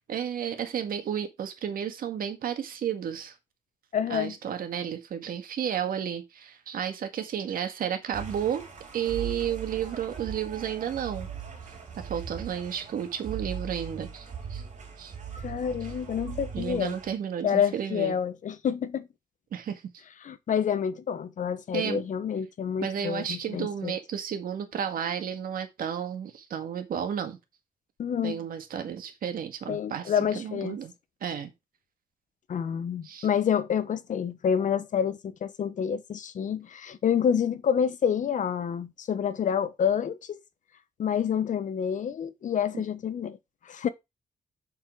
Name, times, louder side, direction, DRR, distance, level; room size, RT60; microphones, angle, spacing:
voice 1, 0.1-3.3 4.1-8.7 8.9-11.3 11.9-14.6 15.0-15.1 16.5-18.2 19.5-19.9 21.7-22.0 22.8-27.4 28.2-30.9 31.2-31.5 33.0-33.3, right 8 dB, 85° right, 1.9 m, -32 dB
voice 2, 3.9-4.3 15.4-16.9 17.4-19.1 20.2-23.9 28.0-28.4 29.7-30.8 32.5-40.4 41.0-43.4 43.6-43.9, left 8 dB, 60° left, 1.0 m, -28 dB
sound 1, 8.1-17.2, right 6 dB, 55° right, 4.7 m, -39 dB
7.2 x 6.9 x 4.7 m
wide cardioid pair, 145°, 14 cm